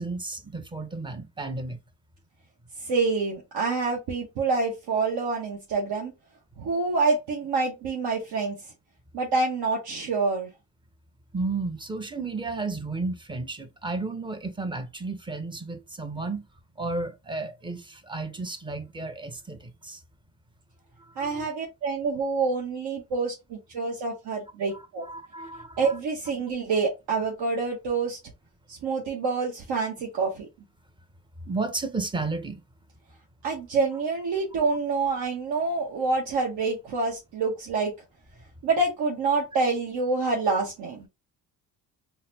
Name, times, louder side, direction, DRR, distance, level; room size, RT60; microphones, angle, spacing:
voice 1, 0.0-1.8 11.3-16.4 16.8-20.0 21.0-21.5 24.7-25.9 31.5-32.6, right 3 dB, 10° right, 0.6 m, -33 dB
voice 2, 2.8-6.1 6.6-8.6 9.1-10.5 21.2-25.1 25.8-28.2 28.7-30.5 33.4-37.9 38.6-41.1, right 4 dB, 65° right, 0.9 m, -27 dB
4.0 x 2.1 x 2.7 m
supercardioid pair, 60°, 45 cm